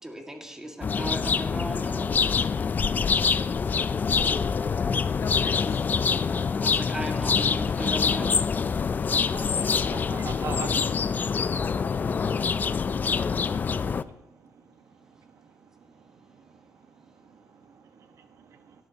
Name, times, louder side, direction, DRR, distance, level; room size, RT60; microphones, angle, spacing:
voice 1, 0.0-2.1 6.1-8.4, right 1 dB, 10° right, 2 dB, 2.0 m, -37 dB
sound 1, 0.8-14.0, left 5 dB, 35° left, 0.4 m, -25 dB
voice 2, 3.0-4.3 5.2-5.8 9.6-9.9, left 5 dB, 65° left, 1 dB, 2.3 m, -44 dB
voice 3, 9.3-10.8 14.0-14.1 17.3-18.7, right 6 dB, 75° right, 6 dB, 1.3 m, -41 dB
17.5 x 13.0 x 2.9 m, 0.85 s
wide cardioid pair, 130°, 5 cm